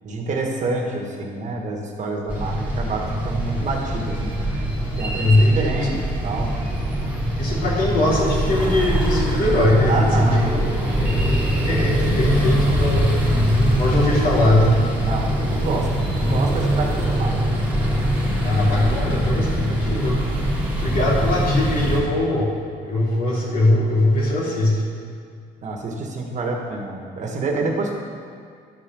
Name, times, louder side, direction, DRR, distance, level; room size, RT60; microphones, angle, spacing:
voice 1, 0.0-4.3 5.0-6.5 9.9-10.4 15.0-17.4 25.6-27.9, right 3 dB, 45° right, 0 dB, 1.4 m, -27 dB
sound 1, 2.3-22.0, equal, 10° right, 2.6 m, -23 dB
voice 2, 5.2-5.9 7.4-10.6 11.0-11.4 11.6-13.2 13.5-14.9 18.4-20.2 20.8-22.5 22.8-24.8, left 1 dB, 55° left, -5 dB, 2.8 m, -20 dB
11.5 x 5.0 x 6.1 m, 2.2 s
cardioid pair, 110°, 17 cm